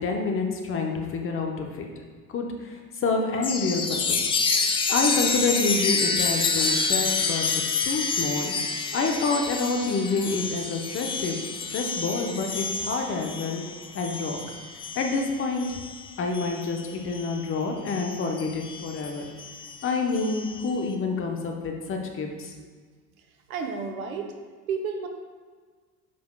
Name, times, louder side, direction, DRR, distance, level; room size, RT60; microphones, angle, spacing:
voice 1, 0.0-1.9 2.3-4.2 4.9-7.5 7.8-8.5 8.9-11.4 11.7-13.6 13.9-14.4 14.9-15.8 16.2-19.3 19.8-22.5, left 3 dB, 30° left, 2 dB, 0.9 m, -28 dB
Chime, 3.4-17.4 17.9-20.7, left 4 dB, 15° left, 0.3 m, -29 dB
voice 2, 23.5-24.3 24.7-25.1, right 5 dB, 70° right, 4 dB, 0.9 m, -31 dB
8.5 x 5.8 x 2.2 m, 1.5 s
figure-of-eight pair, 65°, 45 cm